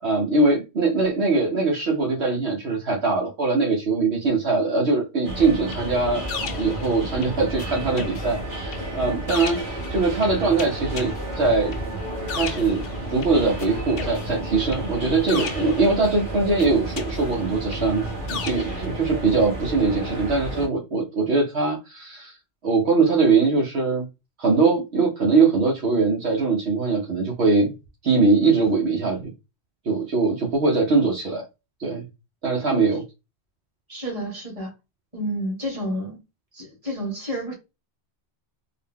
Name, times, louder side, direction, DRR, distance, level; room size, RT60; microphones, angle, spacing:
voice 1, 0.0-6.2 6.6-11.8 12.3-18.0 18.3-22.4 22.6-24.1 24.4-27.7 28.0-29.3 29.8-31.4 31.8-32.1 32.4-33.0, right 3 dB, 65° right, 1.2 m, -22 dB
sound 1, 5.2-20.7, right 1 dB, 45° right, 1.4 m, -32 dB
sound 2, 5.7-7.7 8.0-13.7 14.0-16.2 16.6-18.9, left 6 dB, 60° left, 0.8 m, -36 dB
voice 2, 33.9-34.7 35.1-36.2 36.5-37.5, equal, 30° right, 1.7 m, -30 dB
3.8 x 2.2 x 3.6 m
omnidirectional pair, 1.2 m